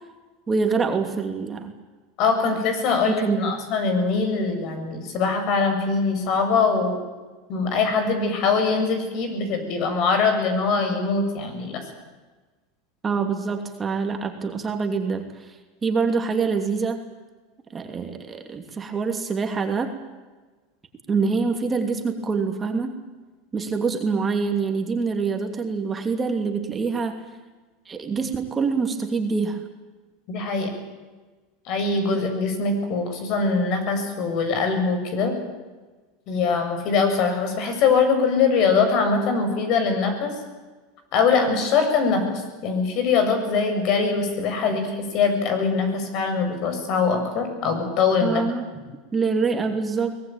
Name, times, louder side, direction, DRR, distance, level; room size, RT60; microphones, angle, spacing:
voice 1, 0.5-1.7 3.0-3.5 13.0-15.5 15.8-17.0 17.7-19.9 21.1-22.9 23.5-27.2 27.9-29.6 48.2-48.7 49.1-50.1, right 4 dB, 20° right, 4 dB, 2.8 m, -25 dB
voice 2, 2.2-7.0 7.5-11.8 30.3-30.8 31.7-35.3 36.3-40.3 41.1-48.4, left 4 dB, 55° left, 6 dB, 7.3 m, -22 dB
23.5 x 19.5 x 9.2 m, 1.3 s
supercardioid pair, 120°, 0 cm